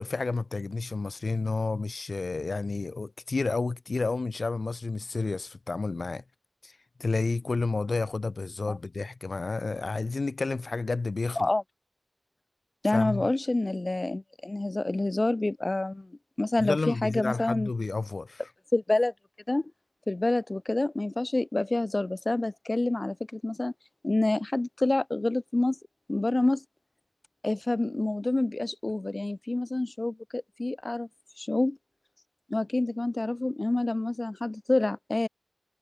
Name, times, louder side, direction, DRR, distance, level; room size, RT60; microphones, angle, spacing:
voice 1, 0.0-6.2 6.6-6.7 7.0-11.5 12.9-13.3 16.6-18.4, left 3 dB, 70° left, 1.3 m, -30 dB
voice 2, 12.8-16.1 16.4-17.7 18.7-19.1 19.5-19.7 20.1-23.7 24.0-25.8 26.1-26.6 27.4-31.1 31.4-31.8 32.5-35.3, left 2 dB, 40° left, 2.7 m, -27 dB
wide cardioid pair, 50°, 0 cm